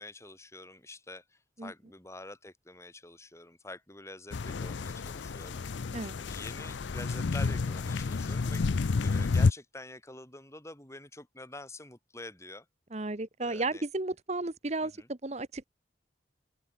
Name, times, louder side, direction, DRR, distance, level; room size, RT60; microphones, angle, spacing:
voice 1, 0.0-8.6 9.0-12.7 13.4-13.8 15.0-15.1, left 2 dB, 15° left, 5.3 m, -47 dB
sound 1, 4.3-9.5, left 4 dB, 75° left, 0.5 m, -30 dB
voice 2, 12.9-15.6, right 2 dB, 35° right, 1.0 m, -34 dB
open air
head